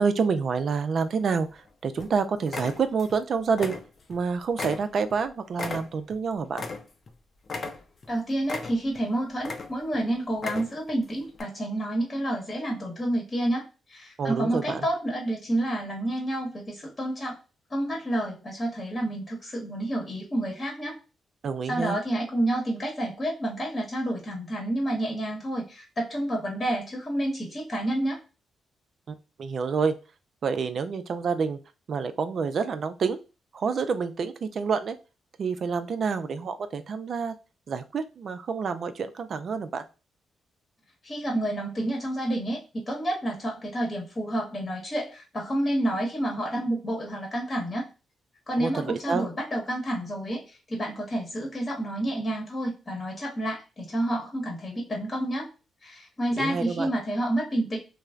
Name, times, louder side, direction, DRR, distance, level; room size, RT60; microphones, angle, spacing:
voice 1, 0.0-3.8 4.1-6.6 14.2-14.9 21.4-22.0 29.1-30.0 30.4-31.6 31.9-33.2 33.5-35.0 35.4-37.3 37.7-39.8 48.6-49.3 56.3-56.9, right 5 dB, 60° right, 10 dB, 0.4 m, -28 dB
sound 1, 1.0-1.6 2.0-2.1 2.5-3.2 3.5-4.2 4.6-7.1 7.5-8.1 8.5-9.0 9.4-10.0 10.3-10.9 11.3-11.4, left 3 dB, 50° left, 0.5 m, -36 dB
voice 2, 8.1-17.3 17.7-21.0 21.7-28.2 41.0-47.8 48.5-55.5 55.8-57.8, right 1 dB, 30° left, 0 dB, 0.9 m, -29 dB
3.1 x 2.0 x 2.3 m, 0.31 s
cardioid pair, 65°, 0 cm